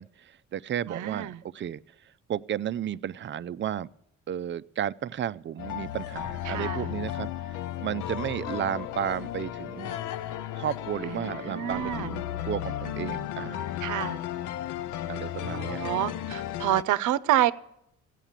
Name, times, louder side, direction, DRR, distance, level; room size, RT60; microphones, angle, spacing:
voice 1, 0.0-1.8 2.3-3.9 4.3-7.3 7.5-9.9 10.6-13.6 15.1-15.9, right 10 dB, 40° right, 15 dB, 0.5 m, -33 dB
voice 2, 0.9-1.4 6.5-6.9 11.1-12.1 13.8-14.2 15.5-17.5, right 13 dB, 80° right, 17 dB, 0.7 m, -28 dB
sound 1, 5.6-16.8, left 12 dB, 85° left, 0.6 m, -34 dB
15.5 x 9.1 x 7.3 m, 0.78 s
cardioid pair, 90°, 30 cm